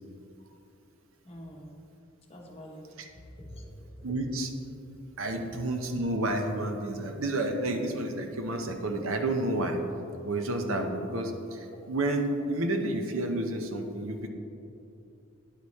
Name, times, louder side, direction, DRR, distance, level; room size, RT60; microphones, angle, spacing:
voice 1, 1.2-1.7 2.3-2.8 3.1-4.1 11.7-11.8, equal, 30° left, -1 dB, 1.0 m, -46 dB
voice 2, 4.0-4.5 5.2-9.8 10.2-14.3, right 1 dB, 70° right, 5 dB, 0.7 m, -30 dB
10.0 x 4.9 x 4.1 m, 2.7 s
head